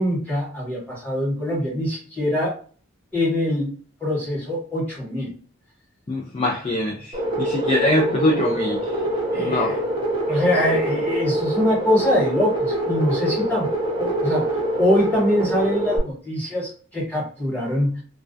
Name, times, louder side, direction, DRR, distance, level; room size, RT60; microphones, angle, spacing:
voice 1, 0.0-2.5 3.1-3.7 4.0-5.4 9.3-9.8 10.3-13.7 14.0-18.0, left 1 dB, 10° left, 1.2 m, -23 dB
voice 2, 6.1-8.8 9.4-9.8, left 1 dB, 25° left, 0.3 m, -23 dB
sound 1, 7.1-16.0, right 1 dB, 25° right, 0.5 m, -24 dB
2.3 x 2.1 x 2.5 m
head